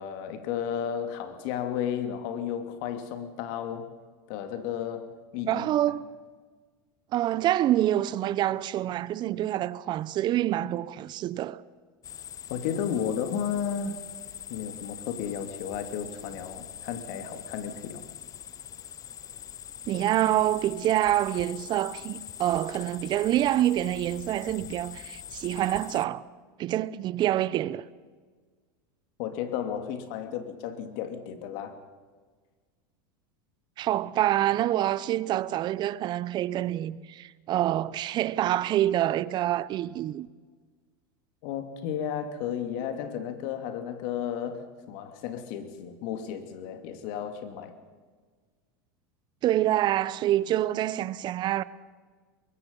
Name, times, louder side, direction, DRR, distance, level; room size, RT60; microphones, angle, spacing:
voice 1, 0.0-3.9 4.3-5.7 12.5-14.0 14.5-18.0 29.2-31.8 41.4-47.8, left 8 dB, 60° left, 2.8 m, -33 dB
voice 2, 5.5-6.1 7.1-11.6 19.9-26.2 26.6-27.8 33.8-40.3 49.4-51.6, right 13 dB, 40° right, 0.9 m, -26 dB
sound 1, 12.0-26.1, left 10 dB, 30° left, 0.8 m, -43 dB
23.5 x 22.0 x 5.6 m
supercardioid pair, 115°, 11 cm